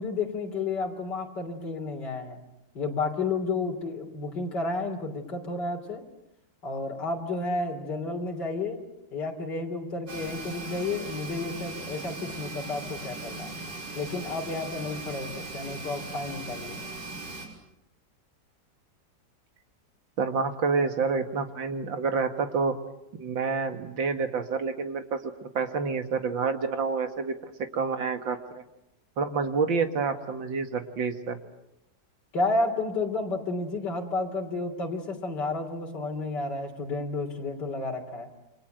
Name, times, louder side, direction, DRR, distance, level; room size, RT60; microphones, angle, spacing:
voice 1, 0.0-2.4 2.8-6.0 6.6-8.8 9.1-13.5 13.9-16.8 32.3-38.3, left 3 dB, 65° left, 1 dB, 3.9 m, -31 dB
sound 1, 10.1-17.5, right 3 dB, 70° right, 6.5 m, -39 dB
voice 2, 20.2-22.7 23.2-28.6 29.2-31.4, right 5 dB, 85° right, 7 dB, 2.6 m, -28 dB
29.0 x 26.0 x 7.9 m, 0.86 s
omnidirectional pair, 2.0 m